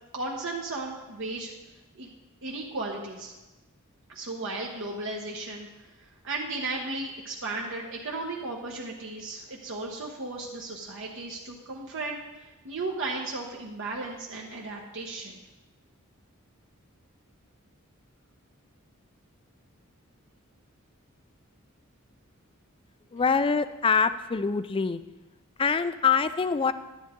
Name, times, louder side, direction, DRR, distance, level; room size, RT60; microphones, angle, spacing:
voice 1, 0.1-1.5 1.9-2.1 2.4-3.3 4.1-15.4, right 2 dB, 60° right, -1 dB, 1.1 m, -35 dB
voice 2, 23.1-25.0 25.6-26.7, left 5 dB, 25° left, 13 dB, 0.4 m, -24 dB
10.5 x 10.0 x 3.7 m, 1.1 s
head